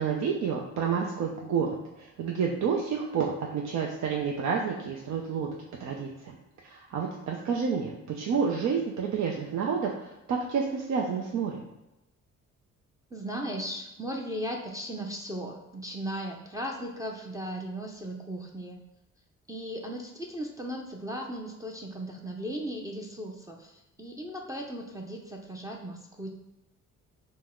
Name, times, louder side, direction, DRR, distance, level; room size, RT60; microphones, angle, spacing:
voice 1, 0.0-5.5 5.8-6.4 6.6-11.6, right 6 dB, 70° right, -1 dB, 0.6 m, -29 dB
voice 2, 13.1-18.8 19.5-26.3, equal, 10° right, -1 dB, 0.5 m, -37 dB
5.3 x 2.1 x 3.6 m, 0.94 s
cardioid pair, 90°, 30 cm